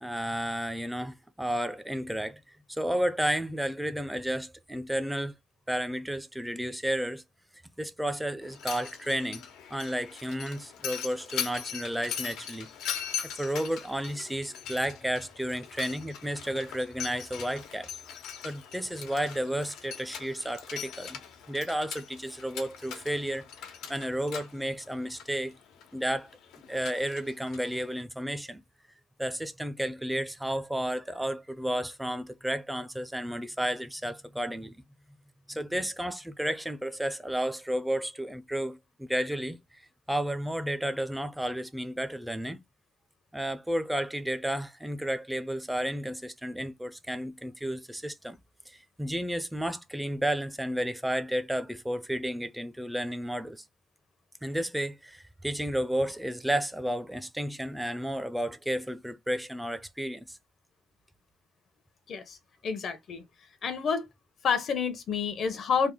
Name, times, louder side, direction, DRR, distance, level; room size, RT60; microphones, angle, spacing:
voice 1, 0.0-5.3 5.7-7.2 7.8-9.4 9.7-12.7 13.4-17.9 18.4-21.2 21.5-23.5 23.9-25.6 25.9-26.3 26.7-28.6 29.2-34.8 35.5-39.8 40.1-42.6 43.3-48.4 48.7-53.6 54.4-60.4, equal, 5° right, 0.5 m, -32 dB
Mechanisms, 8.4-28.0, left 8 dB, 85° left, 1.0 m, -41 dB
voice 2, 62.1-62.4 62.6-63.2 63.6-64.1 64.4-65.9, left 6 dB, 60° left, 0.8 m, -29 dB
3.4 x 2.1 x 3.6 m
cardioid pair, 90°, 0 cm